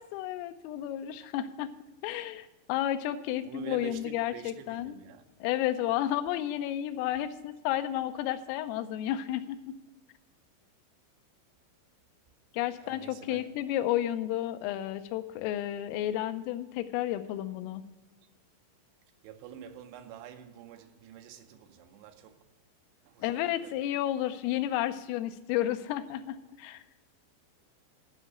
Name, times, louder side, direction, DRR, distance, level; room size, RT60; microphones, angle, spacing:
voice 1, 0.0-1.7 2.0-5.0 5.4-9.8 12.5-17.8 23.2-26.8, left 12 dB, 90° left, 3.3 m, -32 dB
voice 2, 3.5-5.3 12.8-13.5 19.2-22.5 23.0-23.9, right 7 dB, 85° right, 2.4 m, -47 dB
13.0 x 5.5 x 8.0 m
omnidirectional pair, 5.7 m